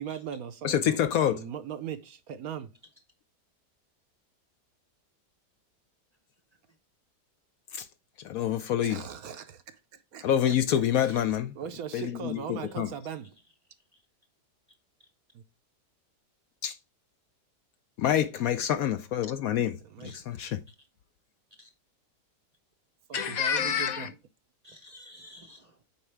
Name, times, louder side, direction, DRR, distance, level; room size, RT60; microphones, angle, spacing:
voice 1, 0.0-2.7 8.8-10.5 11.0-11.2 11.6-13.3 15.3-15.4 19.9-20.1 23.1-24.2, right 8 dB, 70° right, 1.0 m, -39 dB
voice 2, 0.6-1.4 7.7-7.9 8.2-9.0 10.2-11.5 11.9-12.9 16.6-16.8 18.0-20.6 23.1-24.1, left 10 dB, 70° left, 0.9 m, -27 dB
voice 3, 20.0-20.5 21.6-21.7 24.6-25.8, left 1 dB, 40° right, 0.6 m, -52 dB
8.5 x 4.3 x 3.3 m
omnidirectional pair, 1.8 m